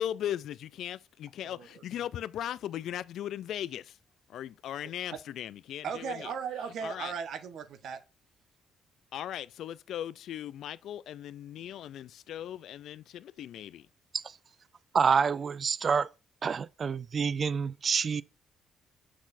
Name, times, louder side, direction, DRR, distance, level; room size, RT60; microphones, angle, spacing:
voice 1, 0.0-4.0 4.3-6.3 6.8-7.1 9.1-13.9, left 11 dB, 75° left, 0.3 m, -38 dB
voice 2, 1.4-1.8 5.1-5.2 5.8-8.0, right 7 dB, 70° right, 1.1 m, -37 dB
voice 3, 14.9-16.1 16.4-18.2, right 6 dB, 45° right, 0.3 m, -27 dB
6.2 x 6.1 x 2.6 m
cardioid pair, 90°, 0 cm